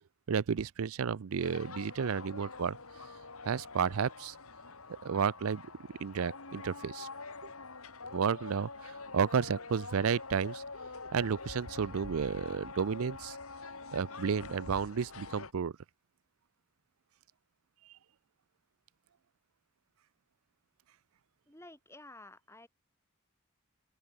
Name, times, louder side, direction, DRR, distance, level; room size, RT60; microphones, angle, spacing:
voice 1, 0.3-2.8 3.5-4.3 4.9-5.6 6.0-7.1 8.1-10.6 11.1-13.4 13.9-15.7, right 6 dB, 75° right, 0.5 m, -32 dB
sound 1, 1.4-15.5, left 3 dB, 75° left, 3.7 m, -46 dB
voice 2, 21.5-22.7, left 2 dB, 10° left, 5.6 m, -52 dB
open air
head